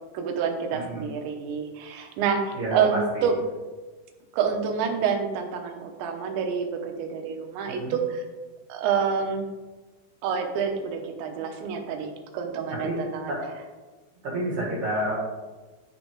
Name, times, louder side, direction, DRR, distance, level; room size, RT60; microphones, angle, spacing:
voice 1, 0.1-3.3 4.3-8.3 8.7-9.5 10.2-13.3, right 6 dB, 85° right, 4 dB, 3.3 m, -28 dB
voice 2, 0.7-1.1 2.5-3.3 7.7-7.9 12.7-13.0 13.3-13.4 14.2-15.2, right 1 dB, 50° right, -4 dB, 2.5 m, -29 dB
11.5 x 4.0 x 4.6 m, 1.3 s
omnidirectional pair, 5.1 m